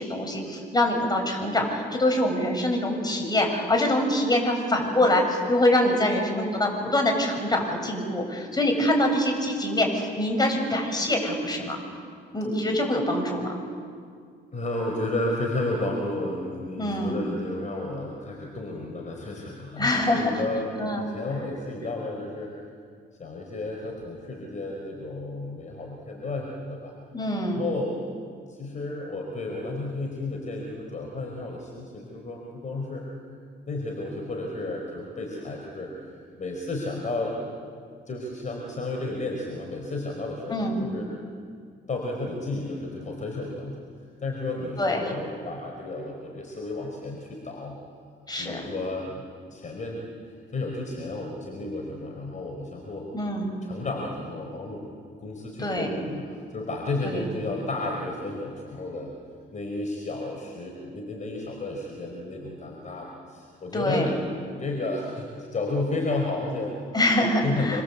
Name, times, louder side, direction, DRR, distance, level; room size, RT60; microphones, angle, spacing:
voice 1, 0.0-11.8 12.3-13.5 16.8-17.2 19.8-20.4 20.8-21.1 27.1-27.6 40.5-40.9 44.8-45.1 48.3-48.6 53.1-53.5 55.6-55.9 57.0-57.2 63.7-64.1 66.9-67.8, left 1 dB, 20° left, 2 dB, 7.7 m, -24 dB
voice 2, 14.5-22.5 23.2-26.9 27.4-28.0 28.5-33.0 33.6-37.4 38.1-41.1 41.9-43.8 44.2-47.8 48.4-50.0 50.5-53.1 53.6-54.8 55.2-59.1 59.5-64.1 64.4-66.7 67.4-67.8, left 2 dB, 40° left, 0 dB, 5.0 m, -32 dB
27.0 x 26.0 x 8.5 m, 2.1 s
cardioid pair, 90°, 20 cm